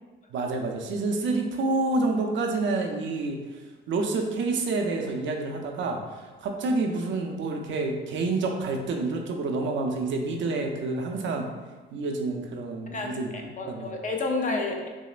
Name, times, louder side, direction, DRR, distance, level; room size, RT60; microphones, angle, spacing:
voice 1, 0.3-3.4 3.9-11.5 11.9-13.3 13.7-13.9, right 3 dB, 70° right, 3 dB, 0.6 m, -28 dB
voice 2, 12.9-14.9, left 3 dB, 40° left, 2 dB, 0.6 m, -30 dB
6.1 x 2.1 x 2.4 m, 1.3 s
cardioid pair, 90°, 20 cm